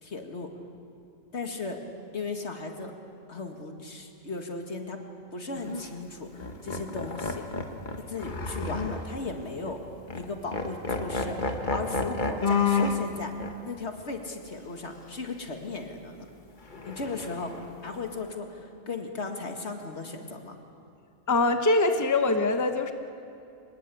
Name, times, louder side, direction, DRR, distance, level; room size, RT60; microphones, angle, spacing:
voice 1, 0.0-0.5 1.3-1.8 2.1-2.9 3.3-5.0 5.3-7.5 8.1-9.8 10.1-13.3 13.6-16.3 16.8-17.5 17.8-20.6, left 3 dB, 65° left, 4 dB, 2.3 m, -36 dB
sound 1, 5.6-5.8 6.4-9.3 9.6-9.8 10.1-10.3 10.5-13.0 13.4-13.5 16.7-17.7, left 4 dB, 40° left, 1.5 m, -30 dB
voice 2, 21.3-22.9, left 2 dB, 15° left, 6 dB, 1.0 m, -23 dB
25.0 x 21.0 x 8.5 m, 2.6 s
omnidirectional pair, 1.2 m